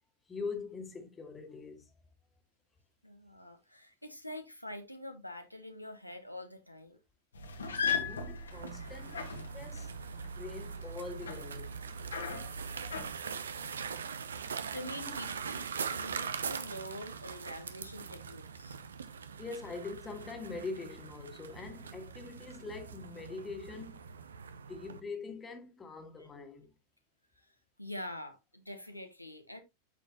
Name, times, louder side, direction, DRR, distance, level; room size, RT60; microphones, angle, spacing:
voice 1, 0.3-1.9 8.1-9.9 10.4-12.0 14.7-15.2 19.4-24.1 24.7-26.7, left 4 dB, 15° left, 1.8 m, -43 dB
voice 2, 3.0-7.0 13.8-14.0 14.3-18.8 27.8-29.6, left 1 dB, 90° left, 1.2 m, -45 dB
sound 1, 7.3-13.1, left 4 dB, 70° left, 1.7 m, -38 dB
sound 2, 8.5-25.0, right 6 dB, 70° right, 0.8 m, -42 dB
8.9 x 6.3 x 2.9 m
figure-of-eight pair, 90°, 0 cm